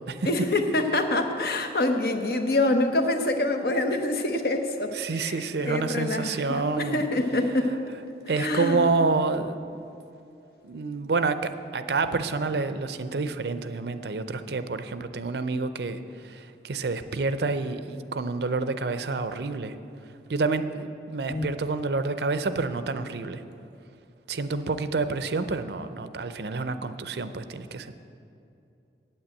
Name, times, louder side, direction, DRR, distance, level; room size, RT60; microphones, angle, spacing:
voice 1, 0.2-7.8 8.4-8.9 21.3-21.5, left 2 dB, 60° left, 5 dB, 0.9 m, -26 dB
voice 2, 5.0-7.0 8.3-9.6 10.6-19.7 20.3-23.4 24.3-27.9, right 3 dB, 70° right, 11 dB, 0.5 m, -28 dB
8.9 x 8.9 x 7.7 m, 2.7 s
head